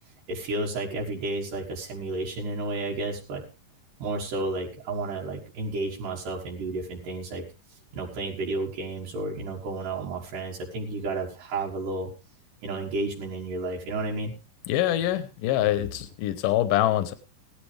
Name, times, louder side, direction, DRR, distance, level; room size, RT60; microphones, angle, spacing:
voice 1, 0.3-3.4 4.0-7.4 7.9-12.1 12.6-14.3, right 2 dB, 80° right, -3 dB, 3.4 m, -32 dB
voice 2, 14.7-17.1, left 13 dB, 85° left, 11 dB, 2.5 m, -24 dB
16.5 x 12.0 x 3.4 m, 0.29 s
omnidirectional pair, 3.8 m